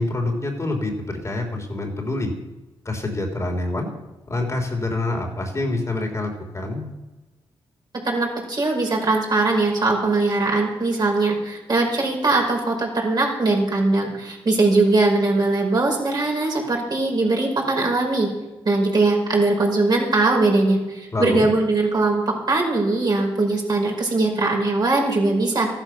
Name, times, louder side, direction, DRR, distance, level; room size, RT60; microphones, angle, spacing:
voice 1, 0.0-2.3 2.8-3.9 4.3-6.9 21.1-21.4, left 2 dB, 30° left, 1 dB, 3.2 m, -26 dB
voice 2, 8.0-18.3 18.7-25.7, right 2 dB, 45° right, 0 dB, 5.2 m, -21 dB
14.0 x 11.5 x 6.1 m, 1.1 s
cardioid pair, 75°, 10 cm